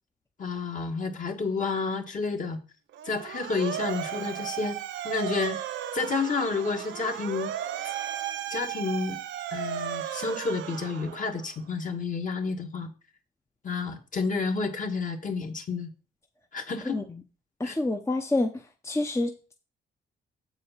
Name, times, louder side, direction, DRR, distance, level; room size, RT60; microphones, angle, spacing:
voice 1, 0.4-2.6 3.0-4.8 5.0-5.6 5.9-7.5 8.5-9.2 9.5-12.9 13.6-15.9 16.5-17.0 17.6-17.7, left 4 dB, 40° left, 4 dB, 1.6 m, -30 dB
Motor vehicle (road) / Siren, 2.9-11.5, right 11 dB, 70° right, 0.7 m, -35 dB
voice 2, 16.8-17.2 17.6-18.5 18.8-19.5, left 2 dB, 15° left, 5 dB, 0.8 m, -28 dB
7.0 x 4.9 x 5.7 m, 0.34 s
cardioid pair, 90°, 20 cm